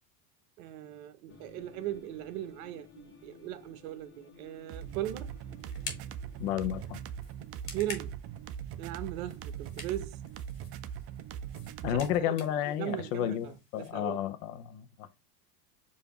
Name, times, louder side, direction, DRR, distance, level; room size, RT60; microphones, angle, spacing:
voice 1, 0.6-5.3 7.7-8.2 8.8-10.2 11.8-12.4 12.8-14.2, right 13 dB, 60° right, 0.7 m, -38 dB
sound 1, 1.3-9.0, left 4 dB, 30° left, 1.3 m, -56 dB
sound 2, 4.7-13.9, left 5 dB, 85° left, 1.4 m, -49 dB
sound 3, 4.7-12.3, right 9 dB, 35° right, 0.4 m, -41 dB
voice 2, 6.4-7.0 11.8-13.5 13.7-15.1, left 11 dB, 55° left, 0.7 m, -31 dB
4.9 x 2.7 x 2.9 m
hypercardioid pair, 85°, 48 cm